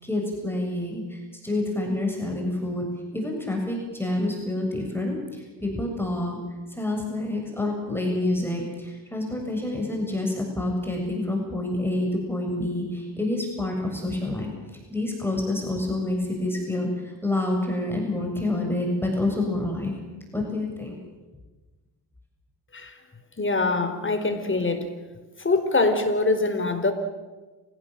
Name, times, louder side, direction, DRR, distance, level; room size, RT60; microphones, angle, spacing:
voice 1, 0.0-2.9 3.1-6.4 6.7-14.5 14.9-19.9 20.3-21.0, left 2 dB, 5° left, 0 dB, 7.2 m, -28 dB
voice 2, 23.4-24.8 25.4-26.9, left 3 dB, 25° left, 8 dB, 4.4 m, -23 dB
29.0 x 17.0 x 7.6 m, 1.2 s
supercardioid pair, 65°, 44 cm